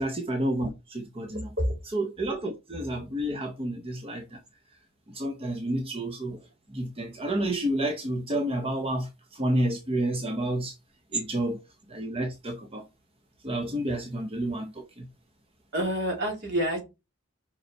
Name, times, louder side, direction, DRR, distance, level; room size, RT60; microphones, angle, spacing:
voice 1, 0.0-1.5 1.9-4.4 5.1-6.4 6.7-10.7 11.1-11.6 11.9-12.9 13.4-15.1, right 1 dB, 25° right, 0.8 m, -30 dB
voice 2, 1.3-1.7 15.7-16.8, equal, 55° right, 3.1 m, -28 dB
5.5 x 5.2 x 4.5 m
head